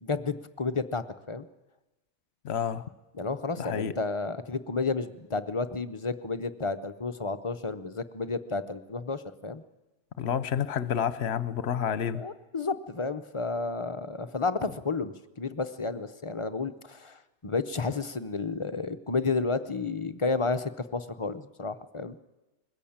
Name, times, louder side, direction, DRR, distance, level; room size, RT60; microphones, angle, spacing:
voice 1, 0.0-1.5 3.2-9.6 12.1-22.2, left 4 dB, 35° left, 10 dB, 0.6 m, -31 dB
voice 2, 2.4-2.9 3.6-3.9 10.2-12.2, left 8 dB, 60° left, 15 dB, 1.1 m, -29 dB
21.5 x 14.5 x 8.7 m, 1.1 s
omnidirectional pair, 1.3 m